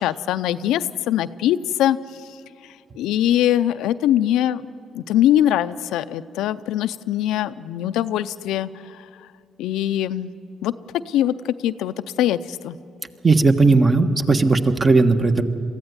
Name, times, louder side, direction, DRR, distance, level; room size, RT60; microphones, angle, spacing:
voice 1, 0.0-2.0 3.0-4.7 4.9-8.7 9.6-10.3 10.6-10.7 11.1-12.8, left 12 dB, 90° left, 12 dB, 0.5 m, -22 dB
voice 2, 13.2-15.4, right 3 dB, 30° right, 7 dB, 1.3 m, -16 dB
22.5 x 15.0 x 9.5 m, 2.7 s
cardioid pair, 90°, 0 cm